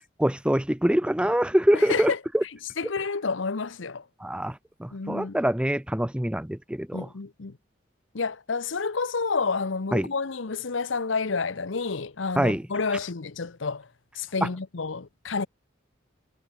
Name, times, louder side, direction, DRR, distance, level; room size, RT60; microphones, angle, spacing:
voice 1, 0.2-2.4 4.2-7.1 9.9-10.1 12.4-12.6 14.4-14.5, equal, 5° right, 0.5 m, -24 dB
voice 2, 1.7-2.2 2.8-4.0 4.9-5.4 6.9-7.6 8.1-13.9 14.1-15.5, left 4 dB, 80° left, 0.9 m, -29 dB
head